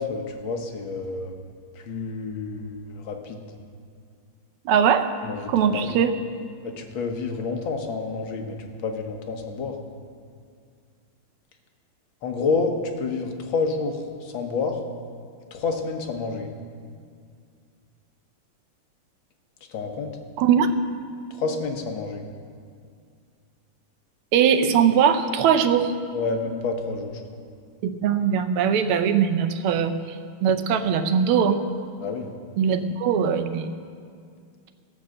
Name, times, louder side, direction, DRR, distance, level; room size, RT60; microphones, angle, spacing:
voice 1, 0.0-1.3 1.9-3.4 5.2-6.0 6.6-9.7 12.2-14.8 15.5-16.5 19.7-20.1 21.3-22.2 26.1-27.2 32.0-32.3, left 4 dB, 65° left, 4 dB, 1.8 m, -29 dB
voice 2, 4.6-5.1 5.5-6.1 20.4-20.7 24.3-25.9 27.8-29.9 30.4-31.6 32.6-33.7, right 7 dB, 80° right, 8 dB, 1.6 m, -20 dB
15.5 x 6.2 x 7.6 m, 2.2 s
omnidirectional pair, 2.4 m